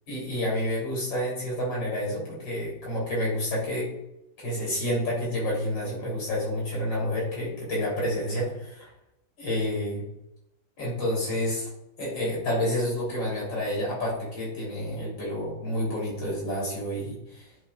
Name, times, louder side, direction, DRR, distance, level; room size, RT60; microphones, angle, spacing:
voice 1, 0.1-3.9 4.4-8.9 9.4-10.0 10.8-11.7 12.0-17.4, left 1 dB, 85° left, -5 dB, 4.1 m, -29 dB
11.0 x 7.9 x 2.4 m, 0.85 s
omnidirectional pair, 2.0 m